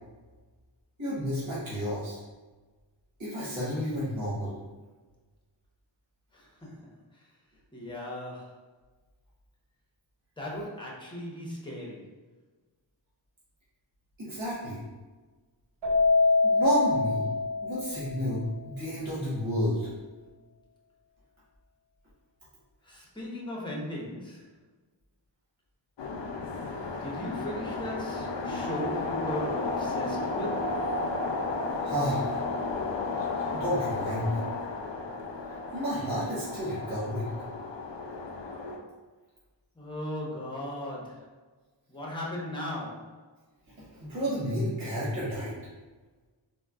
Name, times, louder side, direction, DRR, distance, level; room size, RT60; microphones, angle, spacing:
voice 1, 1.0-2.2 3.2-4.5 14.2-14.8 16.4-17.3 17.6-19.9 31.8-32.3 33.5-34.4 35.7-37.3 43.9-45.6, equal, 80° right, -9 dB, 1.1 m, -31 dB
voice 2, 6.3-7.2 7.7-8.5 10.4-12.1 22.8-24.5 27.0-30.8 39.7-41.3 41.9-43.2, left 1 dB, 10° left, -4 dB, 0.8 m, -37 dB
Keyboard (musical), 15.8-18.3, left 3 dB, 65° right, 1.5 m, -25 dB
sound 1, 26.0-38.8, left 3 dB, 70° left, 0.5 m, -33 dB
3.7 x 2.2 x 2.3 m, 1.3 s
wide cardioid pair, 50°, 46 cm